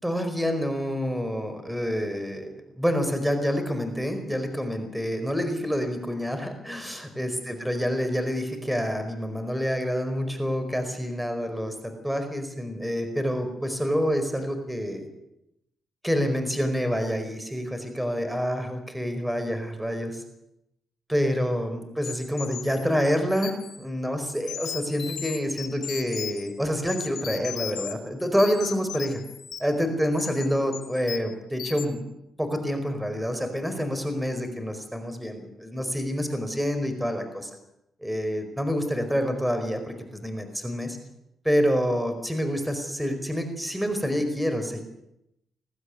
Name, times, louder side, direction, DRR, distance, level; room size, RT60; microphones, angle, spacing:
voice 1, 0.0-15.1 16.0-20.2 21.1-29.2 29.6-32.0 32.4-37.5 38.0-41.0 41.4-44.8, equal, 5° right, 7 dB, 4.8 m, -27 dB
sound 1, 22.0-23.8 24.3-26.5 26.9-27.9 28.2-29.8 30.1-30.4 30.7-31.3 31.6-31.9, left 10 dB, 75° left, 3.0 m, -37 dB
21.0 x 14.5 x 9.6 m, 0.84 s
cardioid pair, 85°, 0 cm